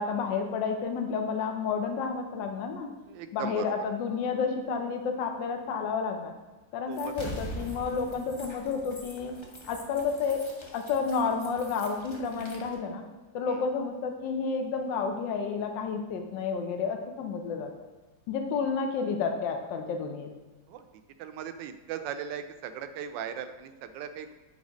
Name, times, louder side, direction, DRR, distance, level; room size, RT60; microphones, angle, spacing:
voice 1, 0.0-2.9 3.3-6.3 6.7-9.3 9.7-10.4 10.7-13.0 13.3-17.7 18.3-20.3, left 5 dB, 80° left, 4 dB, 1.4 m, -30 dB
voice 2, 3.1-3.7 6.9-7.1 13.5-13.6 20.7-20.9 21.2-24.3, right 8 dB, 80° right, 9 dB, 1.2 m, -38 dB
sound 1, 6.9-12.7, equal, 30° left, 0.5 m, -43 dB
8.2 x 3.4 x 5.0 m, 1.2 s
omnidirectional pair, 2.0 m